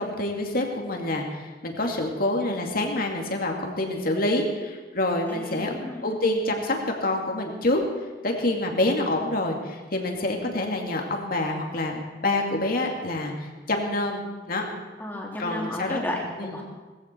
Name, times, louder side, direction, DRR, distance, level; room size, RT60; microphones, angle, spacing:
voice 1, 0.0-5.7 6.0-7.8 8.2-14.6 15.4-16.0 16.4-16.5, left 2 dB, 55° left, 2 dB, 2.5 m, -27 dB
voice 2, 5.3-6.1 15.0-16.6, left 1 dB, 10° left, -2 dB, 3.2 m, -33 dB
19.0 x 15.0 x 4.6 m, 1.3 s
head